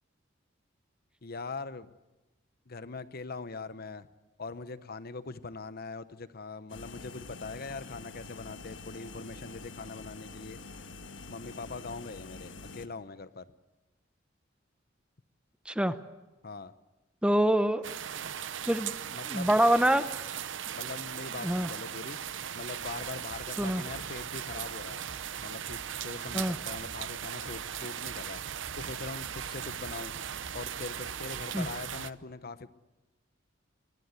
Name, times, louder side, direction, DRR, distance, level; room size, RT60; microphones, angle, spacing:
voice 1, 1.2-1.9 2.7-4.1 4.4-10.6 11.3-13.5 16.4-16.7 19.1-19.5 20.8-22.2 22.5-25.0 25.4-28.4 28.8-30.1 30.5-32.7, left 4 dB, 50° left, 13 dB, 0.9 m, -42 dB
sound 1, 6.7-12.9, left 3 dB, 70° left, 1.3 m, -46 dB
voice 2, 15.7-16.0 17.2-17.8 18.7-18.9 19.3-20.0 21.4-21.7 23.6-23.8 26.3-26.6 31.5-31.7, right 1 dB, 5° right, 11 dB, 0.8 m, -25 dB
sound 2, 17.8-32.1, right 9 dB, 70° right, 0.7 m, -38 dB
sound 3, 22.8-25.4 25.6-31.9, equal, 50° right, 5.7 m, -53 dB
24.0 x 19.5 x 8.3 m, 1.1 s
head